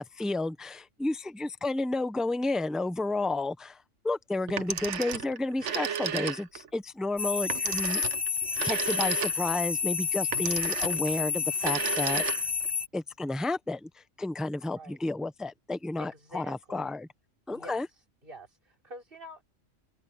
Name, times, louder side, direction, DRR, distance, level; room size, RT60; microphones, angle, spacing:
voice 1, 0.0-3.8 4.0-8.0 8.6-12.2 12.9-17.1 17.5-17.9, left 2 dB, ahead, 0.7 m, -31 dB
Telephone, 4.5-6.7 7.5-9.6 10.3-11.1 11.5-12.7, right 8 dB, 70° right, 1.3 m, -33 dB
sound 1, 7.2-12.9, left 6 dB, 20° left, 2.0 m, -30 dB
voice 2, 16.0-17.0 17.5-17.9 18.2-19.5, right 1 dB, 45° right, 5.4 m, -47 dB
omnidirectional pair, 1.3 m